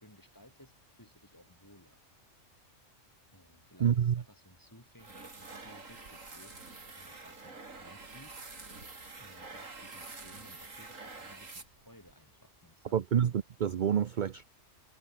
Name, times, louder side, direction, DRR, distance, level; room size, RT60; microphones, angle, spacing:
voice 1, 0.0-2.0 3.3-6.7 7.0-8.4 9.2-13.0, left 1 dB, 15° left, 5.3 m, -58 dB
voice 2, 3.8-4.2 12.9-14.5, right 8 dB, 50° right, 0.7 m, -28 dB
sound 1, 5.0-12.1, right 3 dB, 80° right, 3.7 m, -47 dB
omnidirectional pair, 1.3 m